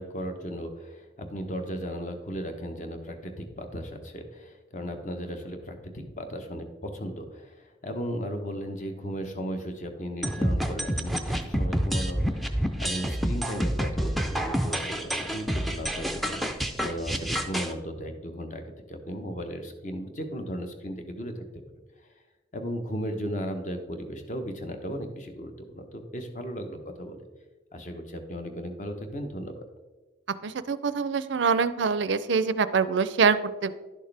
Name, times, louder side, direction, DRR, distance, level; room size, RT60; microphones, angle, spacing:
voice 1, 0.0-21.5 22.5-27.3 27.7-29.6, equal, 40° left, 5 dB, 1.0 m, -36 dB
sound 1, 10.2-17.7, equal, ahead, 0.5 m, -28 dB
voice 2, 30.4-33.7, right 5 dB, 85° right, 14 dB, 0.5 m, -25 dB
11.0 x 6.5 x 3.4 m, 1.2 s
head